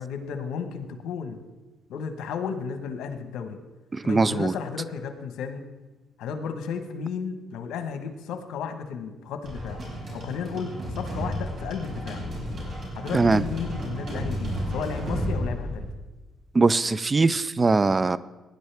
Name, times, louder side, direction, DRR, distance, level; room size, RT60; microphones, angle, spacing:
voice 1, 0.0-1.4 1.9-3.6 4.0-5.6 6.2-9.8 10.1-12.2 12.9-15.9, left 6 dB, 85° left, 7 dB, 1.2 m, -33 dB
voice 2, 3.9-4.5 13.1-13.4 16.5-18.2, right 3 dB, 30° right, 17 dB, 0.4 m, -21 dB
sound 1, 9.4-15.9, equal, 50° right, 5.0 m, -32 dB
18.5 x 10.5 x 3.5 m, 1.1 s
cardioid pair, 90°, 0 cm